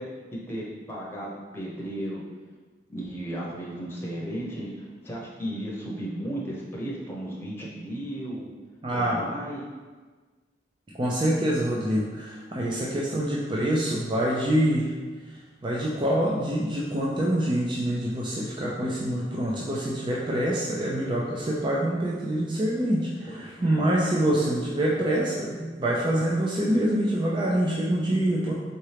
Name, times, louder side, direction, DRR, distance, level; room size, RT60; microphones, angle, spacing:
voice 1, 0.0-2.2 2.9-8.5 8.9-9.7 23.3-23.9, right 1 dB, 15° left, -5 dB, 0.9 m, -35 dB
voice 2, 8.8-9.2 11.0-14.9 15.6-28.5, right 1 dB, 25° right, -4 dB, 0.5 m, -25 dB
4.3 x 3.7 x 3.4 m, 1.4 s
head